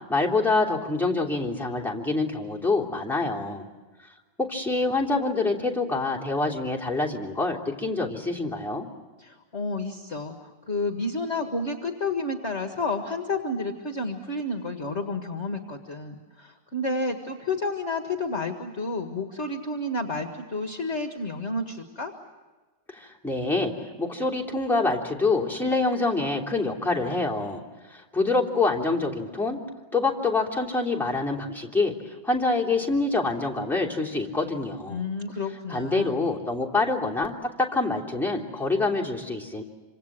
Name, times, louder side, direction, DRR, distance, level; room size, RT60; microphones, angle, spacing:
voice 1, 0.1-3.7 4.4-8.9 22.9-23.7 24.0-27.6 27.9-29.6 29.9-31.9 32.2-35.0 35.7-39.6, left 3 dB, ahead, -2 dB, 3.0 m, -26 dB
voice 2, 9.2-22.1 34.9-36.3, left 2 dB, 40° left, 5 dB, 1.8 m, -30 dB
27.0 x 26.0 x 7.6 m, 1.3 s
omnidirectional pair, 2.0 m